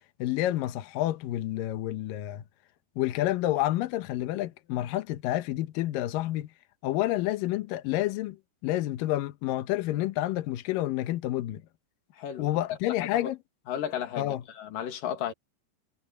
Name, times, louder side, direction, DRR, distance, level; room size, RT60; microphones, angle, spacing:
voice 1, 0.2-2.4 3.0-6.5 6.8-8.4 8.6-11.6 12.4-13.4 14.2-14.4, left 14 dB, 85° left, 1.9 m, -29 dB
voice 2, 12.2-12.5 13.0-13.3 13.7-15.3, left 9 dB, 55° left, 3.1 m, -34 dB
omnidirectional pair, 5.3 m